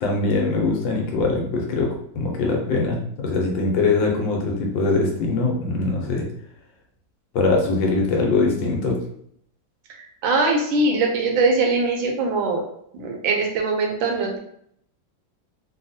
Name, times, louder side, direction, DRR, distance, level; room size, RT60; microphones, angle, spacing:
voice 1, 0.0-6.3 7.3-9.0, left 3 dB, 75° left, 0 dB, 1.4 m, -22 dB
voice 2, 9.9-12.6 12.9-14.4, right 3 dB, 80° right, 2 dB, 1.4 m, -22 dB
3.4 x 2.3 x 2.6 m, 0.69 s
omnidirectional pair, 2.1 m